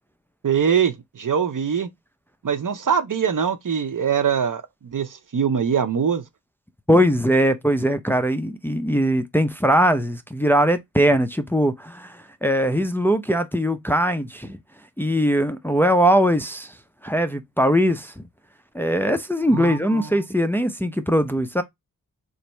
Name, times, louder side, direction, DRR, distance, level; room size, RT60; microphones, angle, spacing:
voice 1, 0.4-1.9 2.4-4.6 4.9-6.2 19.5-20.1, right 7 dB, 60° right, 0.7 m, -22 dB
voice 2, 6.9-14.6 15.0-16.7 17.0-18.2 18.7-21.6, equal, 5° left, 0.5 m, -21 dB
3.0 x 2.6 x 4.3 m
wide cardioid pair, 55°, 36 cm